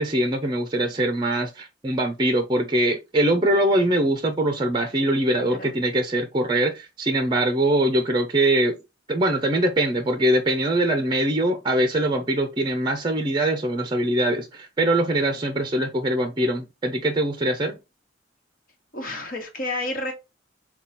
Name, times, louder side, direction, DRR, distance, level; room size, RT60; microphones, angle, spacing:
voice 1, 0.0-8.8 9.1-17.8, right 1 dB, 25° right, 0.6 m, -22 dB
voice 2, 18.9-20.1, left 2 dB, 50° left, 1.4 m, -30 dB
5.7 x 2.3 x 4.0 m
head